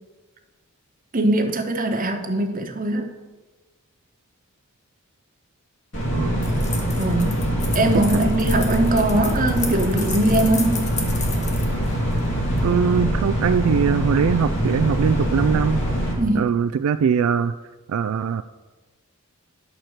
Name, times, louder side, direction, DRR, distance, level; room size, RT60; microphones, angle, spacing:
voice 1, 1.1-3.1 6.9-10.9 16.2-16.5, right 2 dB, 40° right, 4 dB, 1.1 m, -21 dB
sound 1, 5.9-16.1, equal, 60° left, 2.5 m, -23 dB
sound 2, 6.4-12.7, left 4 dB, 35° left, 1.3 m, -34 dB
voice 2, 12.6-15.8 16.3-17.5 17.9-18.4, right 7 dB, 80° right, 11 dB, 0.3 m, -21 dB
10.5 x 4.4 x 6.4 m, 1.2 s
head